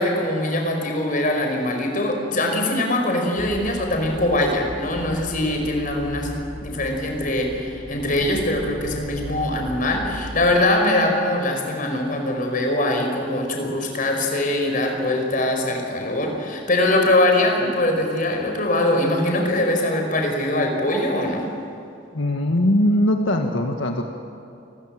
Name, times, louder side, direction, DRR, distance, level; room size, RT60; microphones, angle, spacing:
voice 1, 0.0-21.5, left 1 dB, 45° left, 3 dB, 5.2 m, -22 dB
sound 1, 3.4-10.6, equal, 30° left, 6.7 m, -37 dB
voice 2, 22.1-24.0, left 1 dB, 85° left, 3 dB, 1.7 m, -20 dB
29.5 x 21.5 x 7.7 m, 2.6 s
head